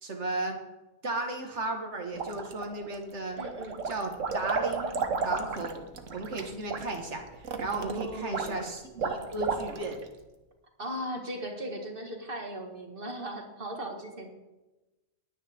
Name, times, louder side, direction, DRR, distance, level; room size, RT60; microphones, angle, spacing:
voice 1, 0.0-0.6 1.0-3.4 3.9-4.9 5.2-5.9 6.1-10.0, right 2 dB, 65° right, 3 dB, 2.1 m, -35 dB
sound 1, 2.1-2.9 3.3-10.0, right 4 dB, 85° right, 1.5 m, -33 dB
voice 2, 3.4-3.8 7.8-8.7 10.8-14.3, right 1 dB, 45° right, 2 dB, 2.1 m, -37 dB
20.0 x 9.6 x 3.7 m, 1.1 s
omnidirectional pair, 1.3 m